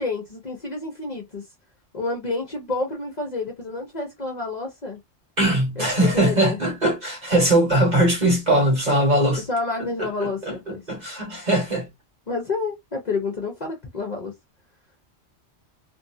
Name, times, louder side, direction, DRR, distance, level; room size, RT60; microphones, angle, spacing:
voice 1, 0.0-1.4 1.9-5.0 5.8-6.6 9.5-10.8 12.3-14.3, left 3 dB, 45° left, 0.7 m, -29 dB
voice 2, 5.4-9.4 9.8-11.9, right 1 dB, 40° right, 1.3 m, -21 dB
2.6 x 2.6 x 2.5 m
omnidirectional pair, 1.2 m